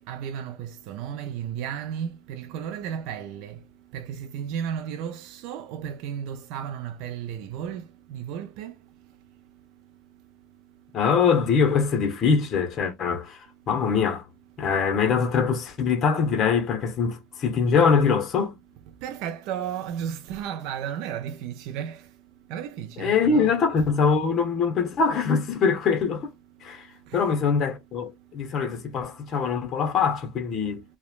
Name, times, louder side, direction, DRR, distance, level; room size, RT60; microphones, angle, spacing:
voice 1, 0.0-3.6 3.9-8.7 19.0-22.1 22.5-23.5 27.1-27.3, right 9 dB, 65° right, 0.3 m, -34 dB
voice 2, 10.9-13.4 13.7-14.3 14.6-18.6 23.0-26.3 26.6-26.9 27.1-30.8, left 5 dB, 40° left, 0.8 m, -23 dB
3.0 x 2.1 x 2.4 m
supercardioid pair, 125°, 0 cm